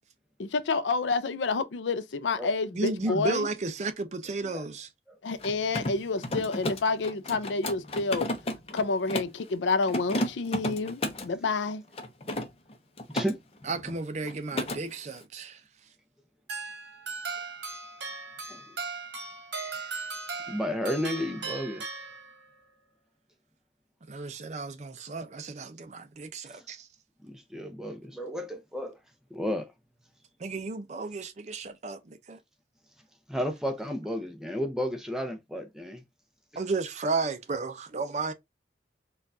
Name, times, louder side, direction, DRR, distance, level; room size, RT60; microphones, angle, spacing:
voice 1, 0.4-3.5 5.2-8.3 8.7-11.8, left 3 dB, 85° left, 0.5 m, -29 dB
voice 2, 2.7-4.9 13.6-15.6 24.1-26.9 30.4-32.4 36.6-38.3, right 3 dB, 40° right, 0.5 m, -33 dB
Mechanisms, 5.3-9.4 9.8-11.3 11.9-13.3 13.6-14.0 14.2-14.8, left 1 dB, 35° left, 0.7 m, -33 dB
sound 1, 16.5-22.6, right 4 dB, 75° right, 1.1 m, -38 dB
voice 3, 20.5-21.9 26.4-26.6 27.2-29.0 29.3-29.7 33.3-36.0 36.5-36.6, equal, 5° right, 0.6 m, -32 dB
4.4 x 2.4 x 2.6 m
head